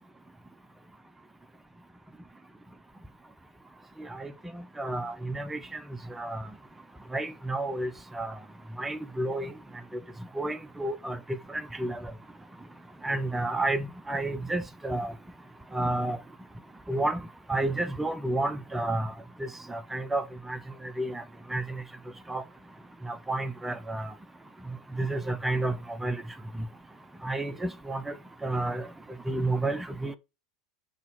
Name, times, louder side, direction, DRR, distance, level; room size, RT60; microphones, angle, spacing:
voice 1, 4.8-5.6 6.1-6.4 7.1-8.3 8.8-9.5 10.4-11.2 11.8-12.0 13.0-15.1 15.7-16.2 16.9-17.2 17.5-19.1 19.7-20.6 21.0-21.2 21.5-21.6 22.3-22.4 23.1-24.1 25.0-25.7 26.0-26.2 27.2-28.1 28.4-28.9 29.3-30.2, right 2 dB, 5° right, 0.4 m, -30 dB
3.8 x 2.8 x 4.1 m
figure-of-eight pair, 80°, 3 cm